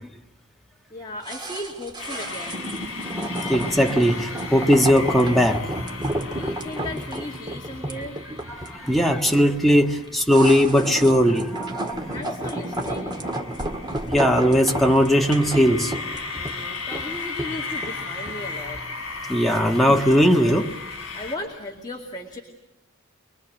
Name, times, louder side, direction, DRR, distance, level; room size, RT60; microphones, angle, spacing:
voice 1, 0.9-2.7 6.3-8.2 12.1-13.2 16.3-18.8 21.1-22.4, left 1 dB, 20° left, 2.4 m, -36 dB
sound 1, 1.2-18.5 18.8-18.9, right 1 dB, 20° right, 1.9 m, -32 dB
sound 2, 2.0-21.4, left 4 dB, 70° left, 5.4 m, -36 dB
voice 2, 3.4-5.7 8.5-12.2 14.1-15.9 19.3-20.7, equal, ahead, 1.6 m, -19 dB
25.5 x 21.5 x 7.8 m
head